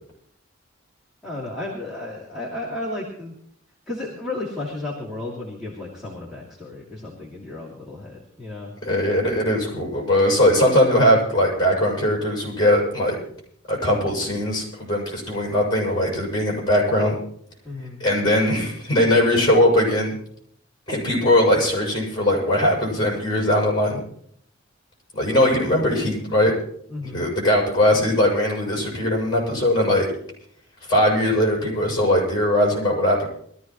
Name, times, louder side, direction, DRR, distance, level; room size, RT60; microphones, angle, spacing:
voice 1, 1.2-3.3 3.9-8.7 17.6-18.0 26.9-27.2, left 2 dB, ahead, -7 dB, 2.8 m, -33 dB
voice 2, 8.8-13.2 13.7-17.1 18.0-20.1 20.9-24.0 25.1-26.5 27.0-30.1 30.9-33.3, left 1 dB, 20° left, -3 dB, 6.6 m, -20 dB
22.5 x 14.0 x 3.1 m, 0.65 s
head